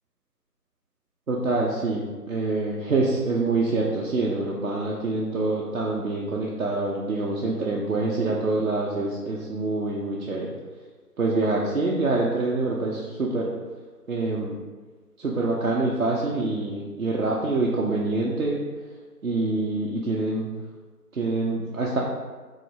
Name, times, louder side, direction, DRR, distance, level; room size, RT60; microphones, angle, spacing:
voice 1, 1.3-10.5 11.2-13.5 14.1-14.5 15.2-18.6 19.2-20.5 21.1-22.0, right 2 dB, 60° right, -3 dB, 0.6 m, -26 dB
3.8 x 3.1 x 3.7 m, 1.4 s
figure-of-eight pair, 155°, 48 cm